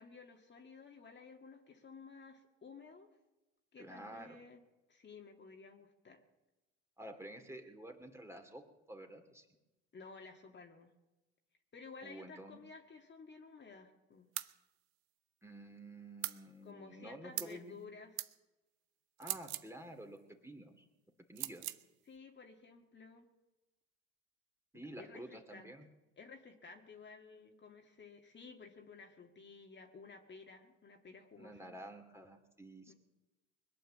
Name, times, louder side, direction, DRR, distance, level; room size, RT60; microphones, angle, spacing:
voice 1, 0.0-3.1 3.7-4.6 4.9-6.2 9.9-10.9 11.7-14.3 16.6-18.2 22.1-23.3 25.0-25.7 26.2-31.8 32.9-33.0, left 4 dB, 35° left, 3 dB, 2.0 m, -54 dB
voice 2, 3.8-4.4 7.0-9.5 12.0-12.6 15.4-17.8 19.2-20.9 21.3-21.7 24.7-25.9 31.4-32.9, right 1 dB, 10° right, 4 dB, 2.4 m, -50 dB
sound 1, 14.4-14.5 16.2-16.4 17.4-17.6 18.2-18.3 19.2-19.7 21.4-21.8, right 18 dB, 85° right, 0.7 m, -40 dB
21.0 x 9.2 x 7.4 m, 1.0 s
supercardioid pair, 80°, 32 cm